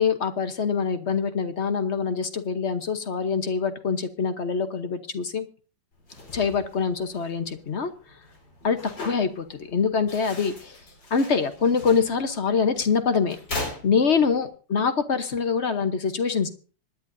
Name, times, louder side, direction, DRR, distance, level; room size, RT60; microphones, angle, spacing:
voice 1, 0.0-5.5 6.3-7.9 8.6-10.8 11.1-13.4 13.8-16.5, left 5 dB, 45° left, 9 dB, 1.1 m, -24 dB
sound 1, 5.9-14.5, left 2 dB, 70° left, 4.9 m, -40 dB
25.5 x 10.5 x 2.7 m, 0.38 s
omnidirectional pair, 2.1 m